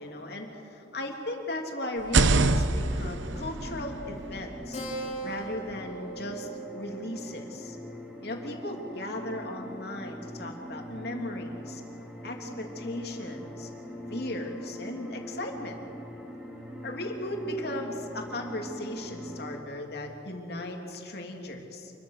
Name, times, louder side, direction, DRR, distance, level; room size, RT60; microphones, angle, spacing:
voice 1, 0.0-4.8 5.2-7.8 8.2-11.8 12.2-13.7 14.1-15.8 16.8-21.9, left 1 dB, 55° left, 1 dB, 3.2 m, -37 dB
sound 1, 2.0-5.8, right 3 dB, 80° right, 1.0 m, -27 dB
sound 2, 2.8-19.6, equal, 5° right, 3.1 m, -42 dB
Keyboard (musical), 4.7-9.7, right 3 dB, 35° left, 4.0 m, -42 dB
28.5 x 22.5 x 6.8 m, 2.8 s
head